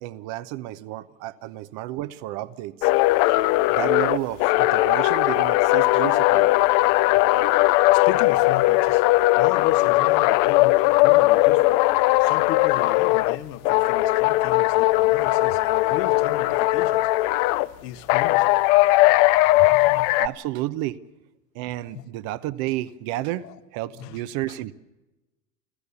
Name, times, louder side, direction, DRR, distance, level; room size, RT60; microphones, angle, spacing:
voice 1, 0.0-2.9 3.7-6.5 19.5-19.9 20.2-21.0 21.5-24.7, right 15 dB, 50° right, 1.0 m, -31 dB
sound 1, 2.8-13.4 13.7-17.7 18.1-20.3, left 19 dB, 45° left, 0.6 m, -19 dB
voice 2, 7.9-9.1 9.4-11.8 12.2-17.1 17.8-18.6 19.0-19.3 19.6-20.1 21.9-22.0 23.4-23.6 24.0-24.2 24.5-24.6, left 13 dB, 70° left, 1.5 m, -36 dB
29.0 x 13.5 x 7.0 m
hypercardioid pair, 110°, 50 cm